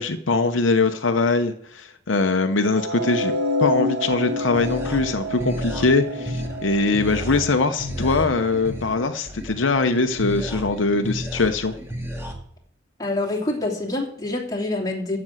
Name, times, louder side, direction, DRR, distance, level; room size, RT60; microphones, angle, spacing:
voice 1, 0.0-3.3 3.6-11.7, left 3 dB, 75° left, 7 dB, 0.8 m, -22 dB
sound 1, 2.7-8.9, left 2 dB, 65° right, 2.1 m, -29 dB
sound 2, 4.1-12.3, equal, 15° right, 1.9 m, -33 dB
voice 2, 13.0-15.2, left 2 dB, 20° left, -3 dB, 2.9 m, -26 dB
15.0 x 6.0 x 7.9 m, 0.68 s
head